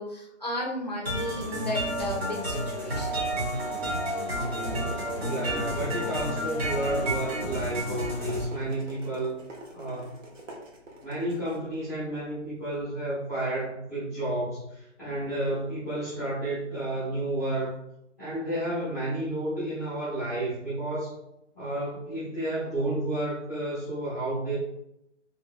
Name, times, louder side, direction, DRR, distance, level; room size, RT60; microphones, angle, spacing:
voice 1, 0.0-3.2, left 1 dB, 35° left, -2 dB, 0.4 m, -34 dB
sound 1, 1.1-8.4, right 1 dB, 55° right, 1.1 m, -30 dB
sound 2, 4.3-12.8, right 1 dB, 80° right, 0.9 m, -46 dB
voice 2, 5.2-9.4 9.7-10.1 11.0-17.7 18.2-21.1 21.5-24.6, right 1 dB, 15° right, -13 dB, 0.6 m, -31 dB
2.6 x 2.3 x 2.5 m, 0.81 s
hypercardioid pair, 175°, 37 cm